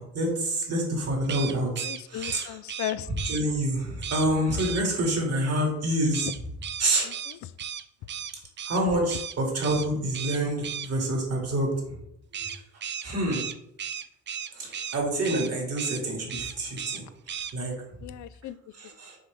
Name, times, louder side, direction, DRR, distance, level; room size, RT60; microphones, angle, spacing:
voice 1, 0.0-2.5 3.2-6.3 6.8-7.1 8.7-11.7 13.0-13.5 14.5-17.1 17.5-17.8 18.8-19.2, right 1 dB, 55° right, -1 dB, 2.4 m, -27 dB
sound 1, 1.2-3.4 4.0-4.3 4.6-4.8 6.1-8.8 9.1-9.4 9.6-9.9 10.1-10.9 12.3-15.0 15.2-15.5 15.8-16.0 16.3-17.0 17.3-17.5, right 8 dB, 40° right, 0.5 m, -35 dB
voice 2, 1.8-3.1 6.2-6.3 7.0-7.4 18.0-18.6, left 13 dB, 70° left, 14 dB, 0.5 m, -36 dB
6.3 x 4.4 x 3.4 m, 0.77 s
cardioid pair, 90°, 30 cm